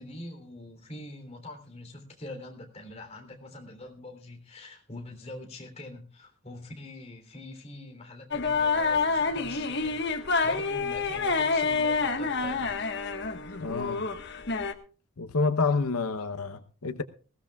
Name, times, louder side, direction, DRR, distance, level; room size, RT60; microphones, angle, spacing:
voice 1, 0.0-12.9 16.2-16.3, left 1 dB, 30° left, 3.4 m, -44 dB
sound 1, 8.3-14.7, left 4 dB, 50° left, 1.5 m, -28 dB
voice 2, 13.6-14.0 15.2-17.0, left 4 dB, 90° left, 0.9 m, -28 dB
20.5 x 16.5 x 2.4 m
head